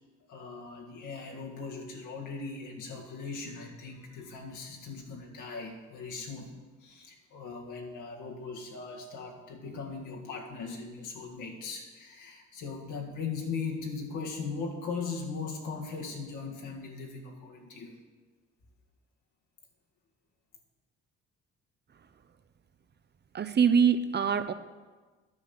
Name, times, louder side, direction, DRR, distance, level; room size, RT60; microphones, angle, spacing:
voice 1, 0.3-6.5 6.8-18.0, left 4 dB, 80° left, 0 dB, 1.8 m, -39 dB
voice 2, 23.3-24.5, right 7 dB, 35° right, 11 dB, 0.5 m, -24 dB
9.7 x 5.7 x 6.9 m, 1.3 s
cardioid pair, 90°, 30 cm